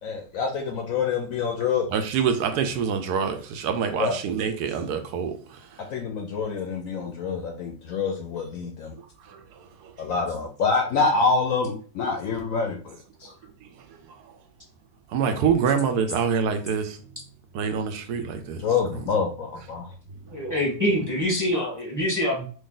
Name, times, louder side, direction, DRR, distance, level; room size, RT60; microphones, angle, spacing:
voice 1, 0.0-1.9 4.0-4.2 5.9-8.9 10.0-13.3 18.6-19.9, left 5 dB, 70° left, 0.8 m, -26 dB
voice 2, 1.9-5.8 9.2-9.9 13.6-14.4 15.1-17.0 17.5-18.7 18.9-19.0, right 6 dB, 75° right, 1.1 m, -26 dB
voice 3, 20.3-22.5, equal, 15° right, 0.9 m, -25 dB
3.0 x 2.7 x 3.7 m
omnidirectional pair, 1.8 m